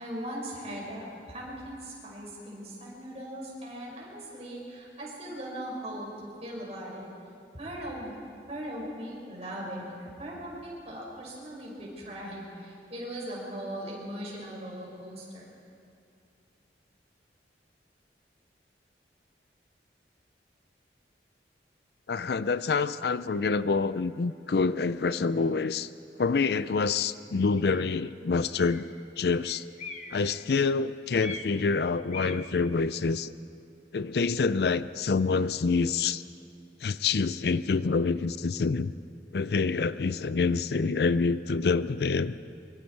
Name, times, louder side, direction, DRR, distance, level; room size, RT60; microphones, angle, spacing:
voice 1, 0.0-7.1 7.5-8.2 8.5-15.6, equal, 35° right, -4 dB, 5.5 m, -39 dB
voice 2, 22.1-25.9 26.2-28.9 29.2-29.7 30.1-33.3 33.9-36.2 36.8-38.9 39.3-42.3, left 4 dB, 60° left, 15 dB, 0.4 m, -27 dB
sound 1, 27.6-27.9 28.5-29.0 29.4-30.6 31.2-31.7 32.1-32.6, left 4 dB, 40° left, 1.2 m, -42 dB
24.0 x 24.0 x 4.6 m, 2.5 s
head